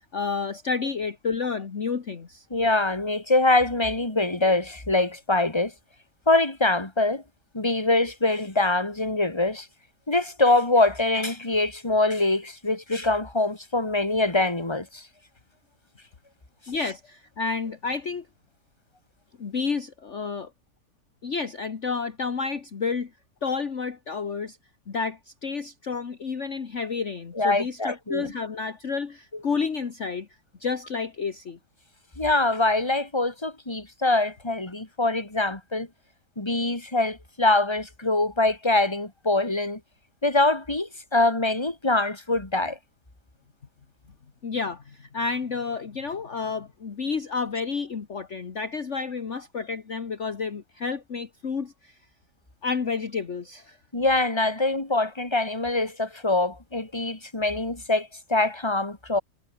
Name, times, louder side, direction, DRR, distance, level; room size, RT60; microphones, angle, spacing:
voice 1, 0.1-2.5 16.7-18.3 19.4-20.5 21.2-23.1 23.4-24.6 24.9-30.3 30.6-31.6 44.4-52.0 52.6-53.8, left 5 dB, 45° left, 1.8 m, -30 dB
voice 2, 2.5-5.7 6.3-7.2 7.5-9.7 10.1-15.0 27.4-28.3 32.2-35.9 36.4-39.8 40.2-42.8 53.9-59.2, left 2 dB, 15° left, 2.9 m, -24 dB
omnidirectional pair, 1.8 m